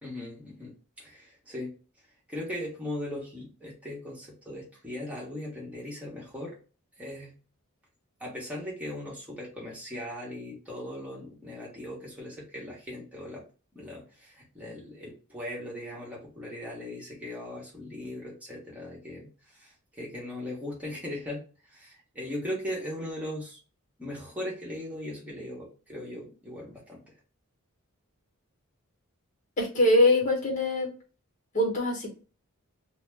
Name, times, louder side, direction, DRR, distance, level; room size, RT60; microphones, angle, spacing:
voice 1, 0.0-1.7 2.3-6.5 7.0-7.4 8.2-13.4 13.7-23.6 24.0-27.1, left 1 dB, 5° right, -4 dB, 1.1 m, -39 dB
voice 2, 29.6-30.9 31.5-32.2, left 1 dB, 35° left, -1 dB, 1.2 m, -23 dB
2.7 x 2.1 x 3.3 m, 0.37 s
head